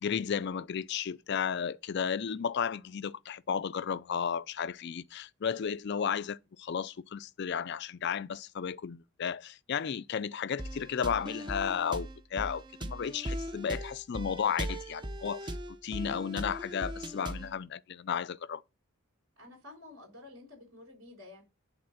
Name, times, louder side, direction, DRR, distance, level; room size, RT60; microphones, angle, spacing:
voice 1, 0.0-15.5 15.8-18.6, left 7 dB, 50° left, 0.4 m, -33 dB
sound 1, 10.6-17.5, right 1 dB, 20° right, 0.6 m, -39 dB
voice 2, 16.1-16.5 19.4-21.4, left 2 dB, 60° right, 5.3 m, -51 dB
10.5 x 4.3 x 5.6 m
head